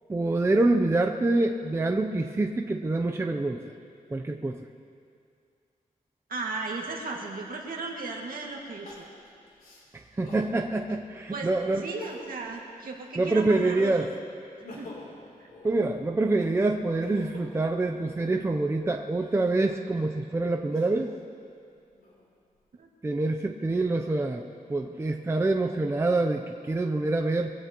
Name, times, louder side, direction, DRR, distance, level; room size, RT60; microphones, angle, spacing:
voice 1, 0.1-3.6 4.1-4.6 10.2-11.8 13.2-14.1 15.6-21.1 23.0-24.4 24.7-27.5, right 2 dB, 15° right, 3 dB, 0.5 m, -26 dB
voice 2, 6.3-9.0 11.3-14.1 14.8-14.9 15.4-15.5 22.8-22.9, right 3 dB, 70° right, -1 dB, 1.9 m, -36 dB
Crying sobbing, 7.5-7.6 8.8-10.5 11.1-11.2 11.8-12.5 12.9-13.9 14.4-18.4 19.1-21.2 21.7-22.5, left 2 dB, 75° left, 3.4 m, -48 dB
23.0 x 16.5 x 3.0 m, 2.4 s
wide cardioid pair, 180°, 15 cm